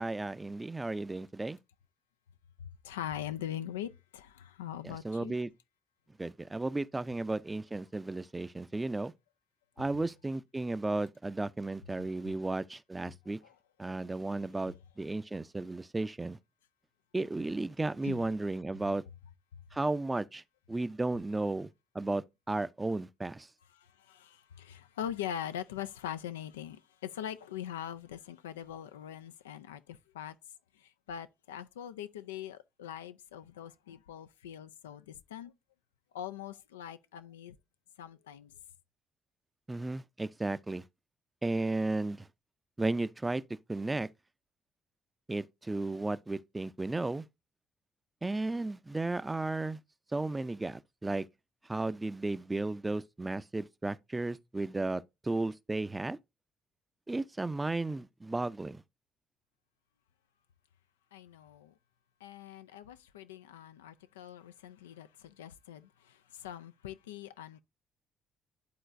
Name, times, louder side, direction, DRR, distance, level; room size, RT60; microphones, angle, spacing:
voice 1, 0.0-1.6 4.8-5.5 6.2-9.1 9.8-13.4 13.8-16.4 17.1-19.0 19.7-20.4 20.7-21.7 21.9-23.5 39.7-40.8 41.4-42.3 42.8-43.4 43.7-44.1 45.3-47.2 48.2-49.8 50.1-51.3 51.7-56.2 57.1-58.8, right 2 dB, 20° right, 0.5 m, -34 dB
voice 2, 2.6-5.4 13.4-13.6 18.0-18.2 19.5-19.6 23.7-30.4 30.7-35.5 36.1-37.6 38.0-38.5 61.1-61.7 62.2-67.6, left 10 dB, 90° left, 0.3 m, -42 dB
11.5 x 3.8 x 2.6 m
hypercardioid pair, 50°, 0 cm